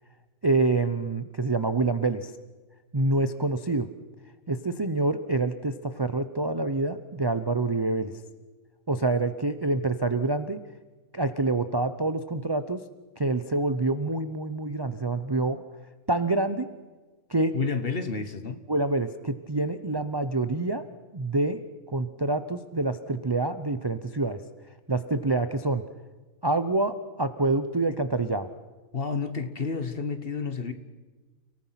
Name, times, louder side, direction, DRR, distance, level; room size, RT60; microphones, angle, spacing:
voice 1, 0.4-2.3 2.9-3.9 4.5-8.1 8.9-10.6 11.1-12.8 13.2-15.6 16.1-16.7 17.3-17.6 18.7-20.8 21.1-21.6 21.9-24.4 24.9-25.8 26.4-28.5, right 2 dB, 25° right, 10 dB, 0.5 m, -26 dB
voice 2, 17.5-18.6 28.9-30.7, left 5 dB, 40° left, 9 dB, 1.5 m, -30 dB
30.0 x 18.5 x 5.9 m, 1.3 s
omnidirectional pair, 1.7 m